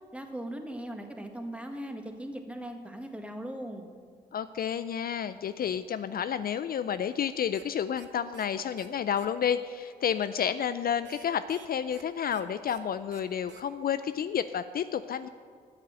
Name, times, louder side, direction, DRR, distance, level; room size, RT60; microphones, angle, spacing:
voice 1, 0.1-3.9, right 1 dB, 5° right, 4 dB, 1.6 m, -39 dB
voice 2, 4.3-15.3, left 8 dB, 55° left, 12 dB, 0.4 m, -30 dB
sound 1, 7.5-7.6 7.9-8.1 8.3-8.5 8.8-8.9 9.1-9.3 11.0-12.0 12.3-12.4 12.7-12.8 13.1-13.2 13.5-13.6, right 9 dB, 85° right, 0.7 m, -51 dB
9.1 x 6.7 x 8.4 m, 2.1 s
supercardioid pair, 45°, 18 cm